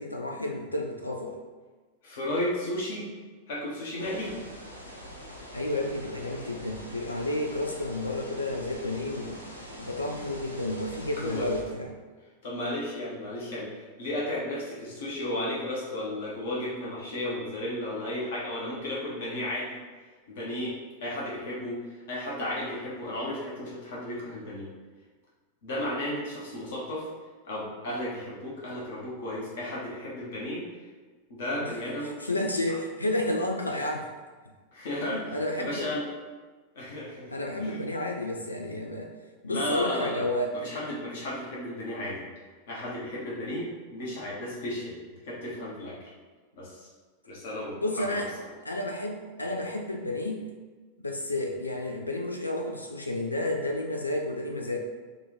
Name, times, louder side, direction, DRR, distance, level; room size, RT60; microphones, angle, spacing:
voice 1, 0.0-1.4 5.5-9.4 9.8-11.9 31.6-31.7 32.2-34.0 35.0-35.9 37.3-39.1 39.4-40.5 47.8-48.3 48.6-50.4 51.0-54.8, left 1 dB, 80° left, 2 dB, 0.3 m, -31 dB
voice 2, 2.0-3.1 3.5-4.3 11.2-11.5 12.4-19.8 20.3-24.7 25.6-27.1 27.4-30.6 31.3-32.1 32.7-32.8 34.7-36.1 36.7-37.3 37.6-37.8 39.5-42.3 42.7-46.1 46.6-46.9 47.3-48.5, left 1 dB, 55° left, -6 dB, 1.0 m, -34 dB
sound 1, 4.0-11.6, equal, 90° right, 0.5 m, -44 dB
3.6 x 2.4 x 3.9 m, 1.4 s
figure-of-eight pair, 90°, 0 cm